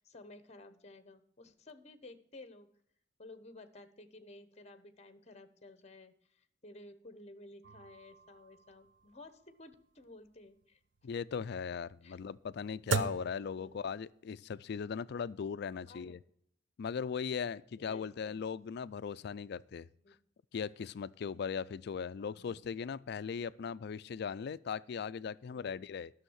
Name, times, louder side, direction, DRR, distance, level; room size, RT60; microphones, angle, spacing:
voice 1, 0.0-2.7 3.2-10.8 12.0-12.2 13.5-13.9 15.9-16.2 17.8-18.4 20.0-20.2 22.2-22.6 25.5-25.8, left 2 dB, 35° left, 11 dB, 1.0 m, -54 dB
sound 1, 7.6-14.3, right 5 dB, 75° right, 0.7 m, -41 dB
voice 2, 11.0-16.2 16.8-19.9 20.5-26.1, left 6 dB, 60° left, 17 dB, 0.4 m, -38 dB
12.0 x 6.4 x 6.3 m, 0.67 s
head